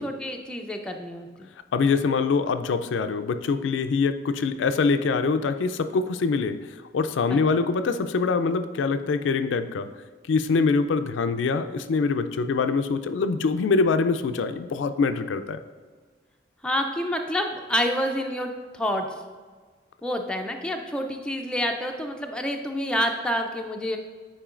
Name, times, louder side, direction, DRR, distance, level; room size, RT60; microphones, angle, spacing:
voice 1, 0.0-1.5 7.3-7.4 16.6-19.1 20.0-24.0, equal, 5° left, 3 dB, 0.4 m, -28 dB
voice 2, 1.7-6.6 6.9-9.9 10.3-15.6, left 4 dB, 85° left, 9 dB, 0.4 m, -24 dB
8.7 x 4.4 x 2.4 m, 1.4 s
head